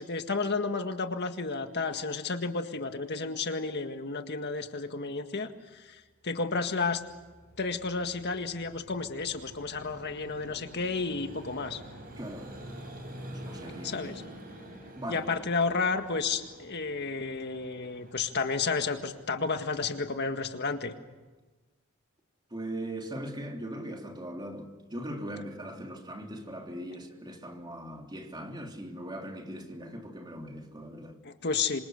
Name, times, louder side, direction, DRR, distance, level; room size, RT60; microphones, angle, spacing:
voice 1, 0.0-7.0 7.6-11.8 13.8-14.2 15.1-20.9 31.2-31.8, left 4 dB, 55° left, 1.8 m, -32 dB
Vehicle, 6.6-21.2, right 1 dB, 45° right, 7.8 m, -48 dB
voice 2, 12.2-12.5 13.3-13.9 14.9-15.3 22.5-31.2, right 1 dB, 20° right, 3.4 m, -40 dB
27.0 x 26.5 x 6.5 m
head